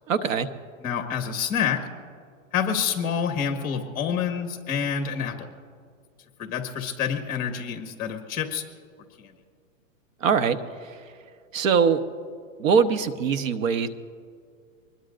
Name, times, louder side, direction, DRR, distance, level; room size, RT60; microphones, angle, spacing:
voice 1, 0.1-0.5 10.2-11.0 11.5-12.0 12.6-13.9, right 6 dB, 70° right, 10 dB, 1.2 m, -22 dB
voice 2, 0.8-1.8 2.5-5.5 6.4-8.6 9.2-9.3, left 7 dB, 20° left, 5 dB, 1.5 m, -27 dB
24.5 x 20.5 x 2.6 m, 2.1 s
hypercardioid pair, 155°, 41 cm